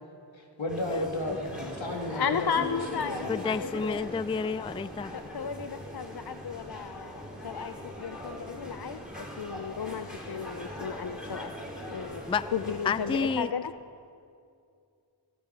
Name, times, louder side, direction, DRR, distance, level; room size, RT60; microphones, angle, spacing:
voice 1, 0.3-3.3, left 1 dB, 80° left, 1 dB, 2.0 m, -34 dB
sound 1, 0.7-13.3, equal, ahead, 4.7 m, -41 dB
voice 2, 2.1-4.1 5.1-11.5 11.9-12.2 12.5-13.7, left 7 dB, 55° left, 10 dB, 0.6 m, -34 dB
sound 2, 2.6-6.3, right 1 dB, 25° right, 1.9 m, -49 dB
voice 3, 3.3-5.1 12.3-12.5 12.8-13.5, left 5 dB, 15° left, 16 dB, 0.3 m, -30 dB
16.5 x 15.5 x 5.5 m, 2.4 s
wide cardioid pair, 45°, 45 cm